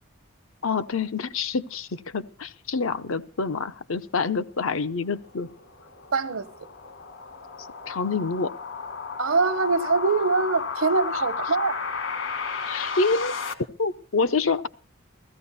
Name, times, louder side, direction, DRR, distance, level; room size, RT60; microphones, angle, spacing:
voice 1, 0.6-5.5 7.9-8.5 12.7-13.3 13.8-14.7, left 4 dB, 80° left, 0.8 m, -27 dB
sound 1, 4.9-13.5, left 5 dB, 65° left, 1.5 m, -33 dB
voice 2, 6.1-6.5 9.2-11.8, right 4 dB, 85° right, 1.0 m, -23 dB
15.0 x 15.0 x 4.1 m
head